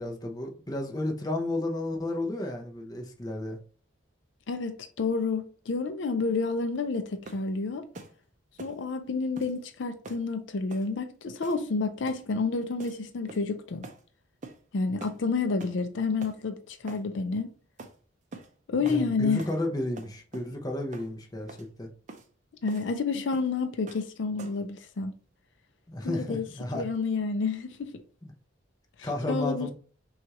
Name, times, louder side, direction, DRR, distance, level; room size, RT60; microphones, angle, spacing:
voice 1, 0.0-3.6 18.8-21.9 25.9-26.9 28.2-28.3 29.0-29.7, left 1 dB, 20° left, 0.6 m, -32 dB
voice 2, 4.5-7.9 8.6-13.8 14.7-17.5 18.7-19.4 22.6-25.1 26.0-26.5 26.7-28.0 29.0-29.7, left 4 dB, 65° left, 0.4 m, -29 dB
sound 1, 7.2-7.5 7.9-8.2 8.6-8.8 9.4-9.6 10.0-10.3 10.7-10.9 11.4-11.7 12.1-12.3 12.8-13.0 13.3-13.5 13.8-14.0 14.4-14.6 15.0-15.2 15.6-15.8 16.2-16.4 16.9-17.1 17.8-17.9 18.3-18.5 18.8-19.0 19.4-19.6 20.0-20.5 20.9-21.1 21.5-21.7 22.1-22.3 22.7-22.9 23.3-23.5 23.9-24.1 24.4-24.7, right 3 dB, 40° right, 0.5 m, -45 dB
6.0 x 2.4 x 2.9 m
head